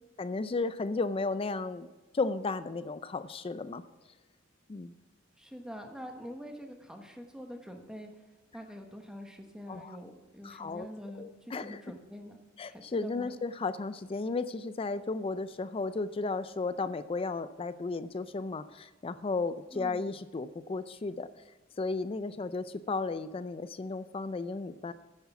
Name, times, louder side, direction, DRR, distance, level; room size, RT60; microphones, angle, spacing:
voice 1, 0.2-1.9 2.1-3.8 4.7-5.0 9.7-10.0 10.4-10.9 11.2-11.8 12.6-21.3 21.8-24.9, left 3 dB, 30° left, 14 dB, 0.4 m, -34 dB
voice 2, 5.4-8.1 8.5-12.4 12.7-13.3 19.7-20.1, equal, 5° right, 3 dB, 1.1 m, -45 dB
9.9 x 9.5 x 5.9 m, 1.2 s
head